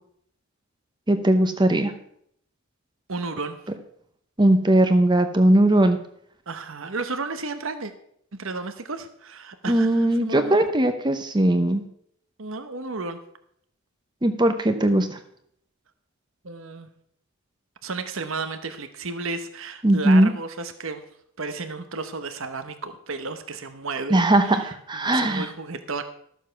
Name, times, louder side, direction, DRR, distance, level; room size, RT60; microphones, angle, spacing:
voice 1, 1.1-1.9 4.4-6.0 9.7-11.8 14.2-15.2 19.8-20.3 24.1-25.5, right 1 dB, 20° right, 7 dB, 0.9 m, -19 dB
voice 2, 3.1-3.6 6.5-7.9 8.3-10.6 12.4-13.2 16.4-16.9 17.8-21.0 21.4-26.0, right 3 dB, 65° right, 8 dB, 1.0 m, -33 dB
13.5 x 7.3 x 5.8 m, 0.68 s
head